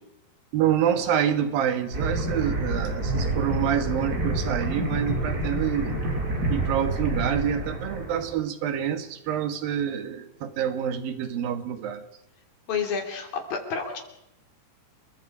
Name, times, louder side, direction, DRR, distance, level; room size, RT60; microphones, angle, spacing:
voice 1, 0.5-6.0 6.5-12.0, right 9 dB, 85° right, 9 dB, 3.4 m, -27 dB
sound 1, 1.9-8.3, right 2 dB, 25° right, 5.6 m, -28 dB
voice 2, 12.7-14.0, left 6 dB, 75° left, 4 dB, 4.9 m, -29 dB
29.5 x 22.5 x 5.0 m, 0.82 s
omnidirectional pair, 4.0 m